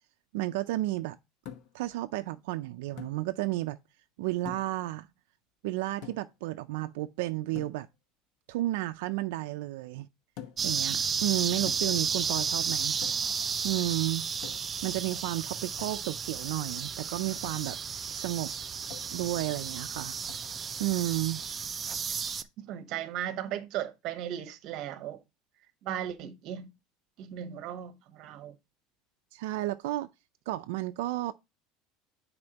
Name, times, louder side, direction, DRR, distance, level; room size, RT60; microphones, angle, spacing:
voice 1, 0.3-1.2 1.7-3.8 4.2-5.1 5.6-7.9 8.5-10.1 10.6-13.0 13.6-14.3 14.8-17.8 18.1-18.5 19.1-20.1 20.8-21.4 29.3-30.1 30.5-31.3, right 17 dB, 85° right, 0.4 m, -32 dB
sound 1, 1.4-1.9 3.0-3.2 4.4-4.8 6.0-6.4 7.5-7.8 10.4-10.7 11.7-12.1 13.0-13.4 14.4-14.8 15.8-16.0 17.4-17.7 18.9-19.2 20.3-20.5, left 9 dB, 55° left, 1.0 m, -46 dB
sound 2, 10.6-22.4, right 6 dB, 20° right, 0.4 m, -33 dB
voice 2, 22.6-25.2 25.8-26.7 27.2-28.6, right 10 dB, 45° right, 0.9 m, -36 dB
9.7 x 4.3 x 2.8 m
cardioid pair, 170°, 0 cm